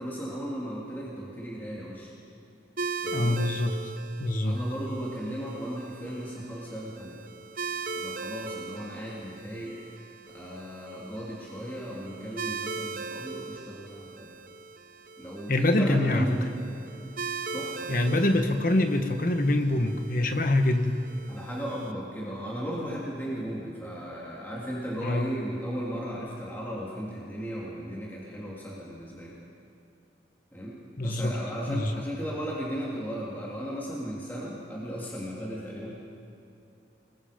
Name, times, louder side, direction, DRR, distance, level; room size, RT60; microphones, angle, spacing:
voice 1, 0.0-2.1 3.0-3.4 4.4-7.2 7.9-9.8 10.3-14.3 15.2-16.4 17.5-18.1 21.3-29.4 30.5-30.8 31.0-35.9, equal, 10° left, -6 dB, 2.8 m, -36 dB
sound 1, 2.8-21.9, right 4 dB, 50° right, 0.8 m, -39 dB
voice 2, 3.1-3.8 4.2-4.6 15.5-16.3 17.9-21.0 25.0-25.3 31.0-31.4 31.7-32.0, left 1 dB, 50° left, 6 dB, 1.4 m, -25 dB
28.5 x 20.5 x 5.2 m, 2.7 s
head